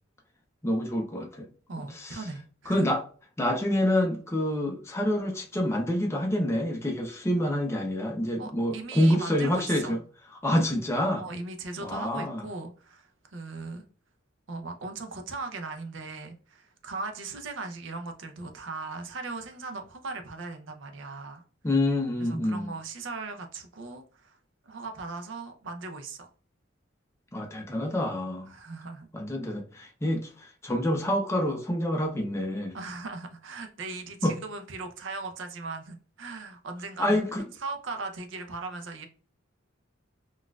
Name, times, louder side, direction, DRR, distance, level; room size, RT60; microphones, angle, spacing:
voice 1, 0.6-1.5 1.9-2.2 2.7-3.0 3.4-10.0 10.4-11.3 11.8-12.4 21.6-22.7 27.3-28.5 29.1-32.8 34.2-34.4 37.0-37.4, left 1 dB, 15° left, 0.4 m, -27 dB
voice 2, 1.7-2.9 8.4-9.9 11.2-13.8 14.5-21.4 22.2-24.4 24.6-26.3 28.5-29.1 32.7-37.2 37.6-39.1, right 3 dB, 65° right, 0.5 m, -38 dB
4.0 x 2.3 x 2.2 m
head